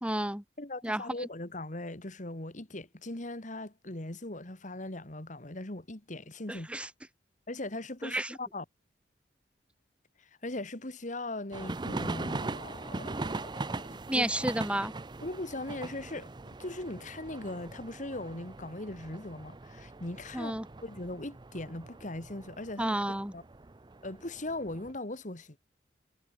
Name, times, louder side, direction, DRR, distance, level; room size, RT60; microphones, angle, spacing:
voice 1, 0.0-0.4 0.8-1.3 6.5-6.9 8.0-8.4 14.1-14.9 20.3-20.7 22.8-23.3, right 1 dB, 5° right, 2.2 m, -31 dB
voice 2, 0.6-6.7 7.5-8.6 10.2-14.3 15.2-20.5 20.8-23.0 23.3-23.4 24.0-25.6, left 2 dB, 45° left, 2.3 m, -39 dB
sound 1, 11.5-24.9, right 2 dB, 25° right, 0.6 m, -40 dB
head